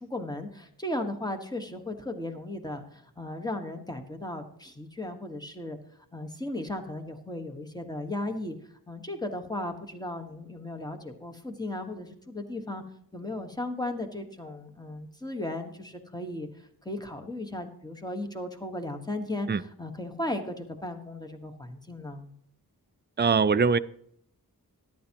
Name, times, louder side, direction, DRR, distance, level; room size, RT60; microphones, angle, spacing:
voice 1, 0.0-5.8 6.1-8.5 8.9-12.8 13.1-16.5 16.8-22.3, left 1 dB, 10° left, 5 dB, 1.4 m, -36 dB
voice 2, 23.2-23.8, right 5 dB, 30° right, 13 dB, 0.4 m, -22 dB
13.5 x 11.0 x 2.9 m, 0.69 s
wide cardioid pair, 65°, 38 cm